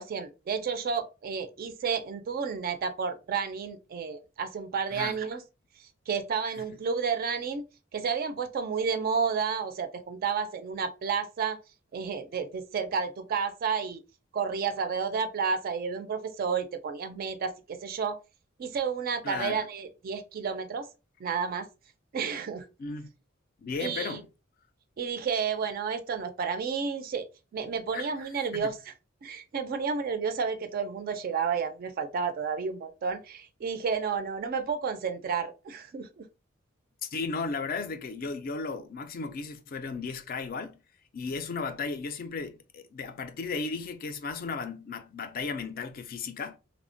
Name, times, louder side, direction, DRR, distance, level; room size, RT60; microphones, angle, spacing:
voice 1, 0.0-5.4 6.1-7.6 7.9-11.6 11.9-14.0 14.3-18.2 18.6-20.9 21.2-21.7 22.1-22.7 23.8-24.2 25.0-27.3 27.5-28.9 29.2-36.2, right 6 dB, 50° right, 0.3 m, -31 dB
voice 2, 19.2-19.6 22.8-23.1 23.6-24.3 27.9-28.1 28.5-28.7 37.0-40.8 41.1-46.6, left 4 dB, 45° left, 0.4 m, -35 dB
3.1 x 2.1 x 2.5 m
head